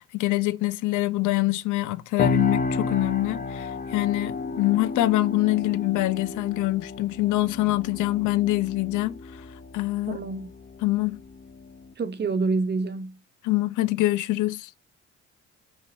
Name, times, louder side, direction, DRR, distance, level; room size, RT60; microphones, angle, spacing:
voice 1, 0.0-9.2 9.7-10.2 10.8-11.2 13.4-14.7, left 18 dB, 80° left, 0.5 m, -25 dB
sound 1, 2.2-11.9, left 3 dB, 30° left, 0.8 m, -32 dB
voice 2, 10.1-10.5 12.0-13.2, right 4 dB, 35° right, 0.8 m, -27 dB
5.4 x 3.3 x 2.5 m
cardioid pair, 90°, 30 cm